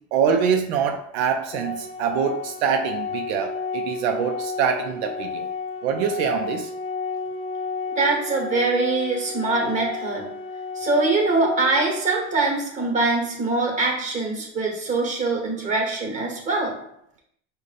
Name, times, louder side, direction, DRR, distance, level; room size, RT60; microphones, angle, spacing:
voice 1, 0.1-5.5 5.8-6.7, right 7 dB, 75° right, 5 dB, 0.5 m, -24 dB
Organ, 1.5-12.5, left 4 dB, 20° left, 0.3 m, -32 dB
voice 2, 7.9-10.2 10.7-16.7, right 3 dB, 25° right, 0 dB, 1.3 m, -23 dB
4.9 x 2.2 x 4.0 m, 0.75 s
cardioid pair, 145°, 32 cm